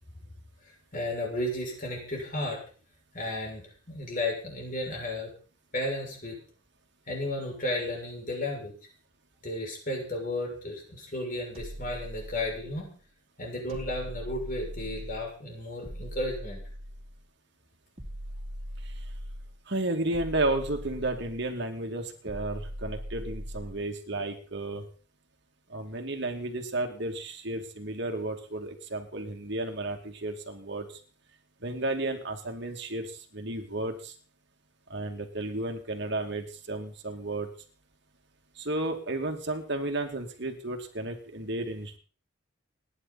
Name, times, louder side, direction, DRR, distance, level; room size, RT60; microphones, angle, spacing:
voice 1, 0.9-2.6 3.1-3.6 3.9-5.3 5.7-6.3 7.1-8.7 9.4-12.9 13.4-16.6, left 1 dB, 40° left, 0 dB, 6.7 m, -33 dB
sound 1, 11.5-12.9 13.7-15.3 15.8-17.2 18.0-19.6 20.1-21.5 22.3-23.9, equal, 30° right, 3.0 m, -40 dB
voice 2, 19.7-24.8 25.7-31.0 31.6-34.1 34.9-37.5 38.6-42.0, right 2 dB, 55° right, 4 dB, 2.5 m, -33 dB
29.5 x 10.5 x 4.2 m, 0.40 s
head